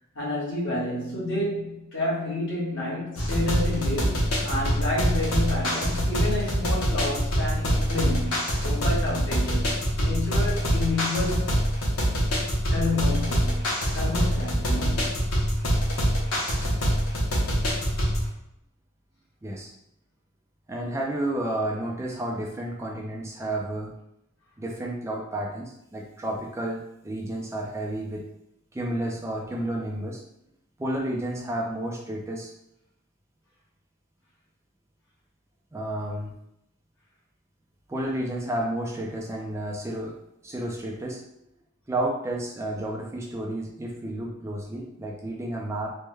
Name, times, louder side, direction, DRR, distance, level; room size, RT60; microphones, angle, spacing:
voice 1, 0.1-9.7 10.0-11.5 12.7-15.2, left 2 dB, 60° left, -5 dB, 1.3 m, -30 dB
sound 1, 3.2-18.3, equal, 90° left, 0.9 m, -25 dB
voice 2, 20.7-23.9 24.6-28.3 28.7-30.2 30.8-32.5 35.7-36.3 37.9-40.2 40.4-41.2 41.9-45.9, right 1 dB, 15° right, -2 dB, 0.4 m, -31 dB
3.3 x 2.2 x 3.1 m, 0.81 s
head